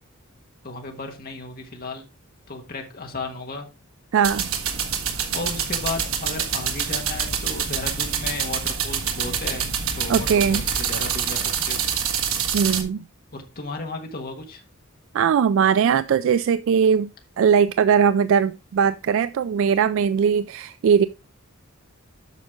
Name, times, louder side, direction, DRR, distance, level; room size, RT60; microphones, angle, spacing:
voice 1, 0.6-2.1 2.5-3.7 5.3-9.7 9.9-11.9 13.3-14.6, left 3 dB, 45° left, 1.5 m, -34 dB
voice 2, 4.1-4.5 10.1-10.6 12.5-13.0 15.1-17.1 17.4-21.1, right 7 dB, 65° right, 0.3 m, -20 dB
sound 1, 4.2-12.8, right 7 dB, 80° right, 1.5 m, -26 dB
8.3 x 6.2 x 3.6 m
head